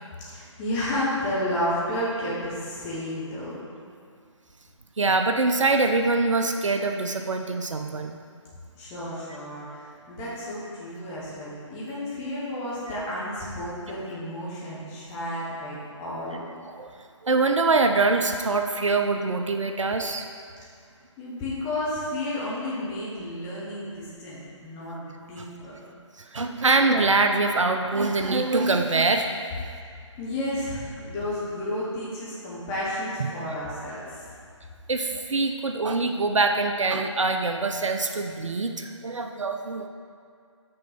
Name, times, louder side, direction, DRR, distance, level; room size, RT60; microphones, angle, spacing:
voice 1, 0.3-3.6 8.7-16.4 21.2-25.8 30.2-34.3, left 1 dB, 15° left, -8 dB, 1.4 m, -32 dB
voice 2, 5.0-8.2 16.7-16.9 17.2-20.2 25.4-25.5 26.3-29.3 34.9-39.9, right 3 dB, 75° right, 5 dB, 0.6 m, -24 dB
6.4 x 4.5 x 6.1 m, 2.3 s
figure-of-eight pair, 145°, 16 cm